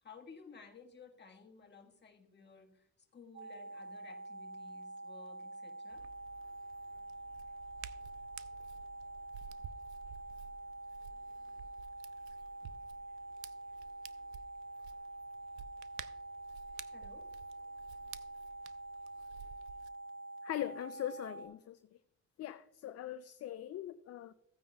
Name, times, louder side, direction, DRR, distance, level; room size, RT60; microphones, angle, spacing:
voice 1, 0.0-6.1 16.9-17.3, left 5 dB, 35° left, 3 dB, 1.6 m, -56 dB
sound 1, 3.3-21.5, right 2 dB, 45° right, 1.1 m, -47 dB
Hands, 5.9-19.9, right 11 dB, 80° right, 0.5 m, -53 dB
voice 2, 20.4-21.8 22.4-24.3, left 12 dB, 55° left, 11 dB, 0.5 m, -41 dB
15.0 x 9.3 x 2.3 m, 0.78 s
cardioid pair, 90°, 30 cm